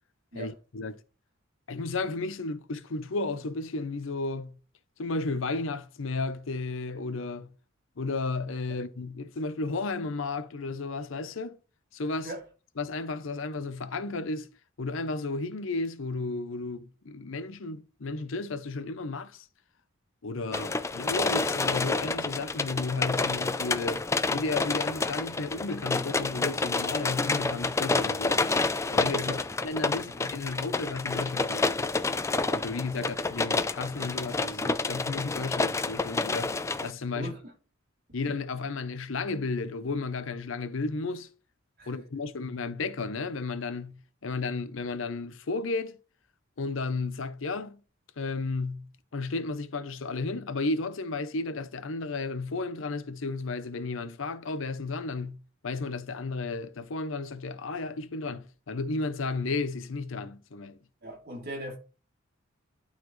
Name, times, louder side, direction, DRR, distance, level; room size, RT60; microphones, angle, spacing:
voice 1, 0.4-1.0 1.7-4.6 5.0-7.5 8.0-11.6 11.9-12.3 12.8-14.5 14.8-19.5 20.2-28.6 28.9-31.9 32.4-36.5 36.8-37.3 38.1-41.3 41.9-46.0 46.6-47.8 48.2-60.8, left 3 dB, 70° left, 0.7 m, -33 dB
sound 1, 20.5-36.9, left 3 dB, 15° left, 0.3 m, -29 dB
voice 2, 37.1-37.5 41.8-42.0 61.0-61.8, right 1 dB, 50° right, 2.8 m, -39 dB
12.0 x 4.1 x 3.1 m
head